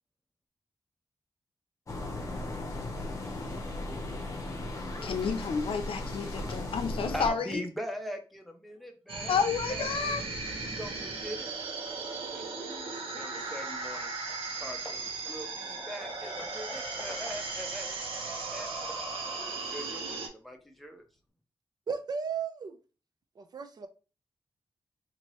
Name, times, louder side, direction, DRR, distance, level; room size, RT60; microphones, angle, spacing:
sound 1, 1.9-7.3, left 2 dB, 35° left, 0.7 m, -36 dB
voice 1, 5.0-7.6 9.3-10.2, left 6 dB, 85° left, 0.6 m, -30 dB
voice 2, 7.1-9.4 9.7-10.1 10.8-11.5 12.3-14.1 14.5-17.9 18.5-18.7 19.4-21.0, equal, ahead, 0.6 m, -41 dB
sound 2, 9.1-20.3, right 3 dB, 80° right, 1.1 m, -37 dB
Hammer / Wood, 13.9-14.0 14.3-14.5 14.8-17.7 18.2-19.2, left 1 dB, 20° left, 1.3 m, -50 dB
voice 3, 21.9-22.8 23.4-23.9, right 6 dB, 50° right, 0.5 m, -35 dB
4.4 x 2.7 x 3.0 m
wide cardioid pair, 180°, 9 cm